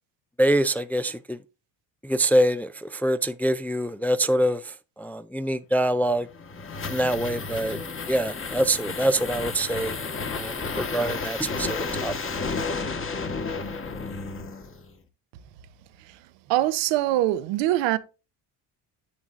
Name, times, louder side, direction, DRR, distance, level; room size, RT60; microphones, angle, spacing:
voice 1, 0.4-1.4 2.0-6.3 6.9-7.8 8.1-9.9 10.3-12.1, right 1 dB, 5° left, 0.3 m, -25 dB
sound 1, 6.1-14.9, left 4 dB, 30° left, 1.4 m, -32 dB
voice 2, 16.5-18.0, right 14 dB, 80° right, 0.8 m, -23 dB
9.9 x 7.1 x 2.5 m
supercardioid pair, 80°, 43 cm